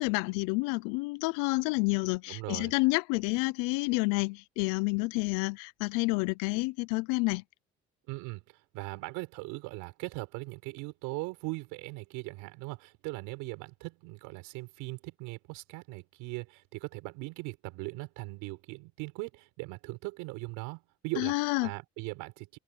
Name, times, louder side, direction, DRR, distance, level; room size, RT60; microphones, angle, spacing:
voice 1, 0.0-7.4 21.2-21.7, left 26 dB, 80° left, 0.8 m, -29 dB
voice 2, 2.3-2.7 8.1-21.3 21.6-22.6, right 25 dB, 80° right, 7.2 m, -40 dB
open air
hypercardioid pair, 65°, 31 cm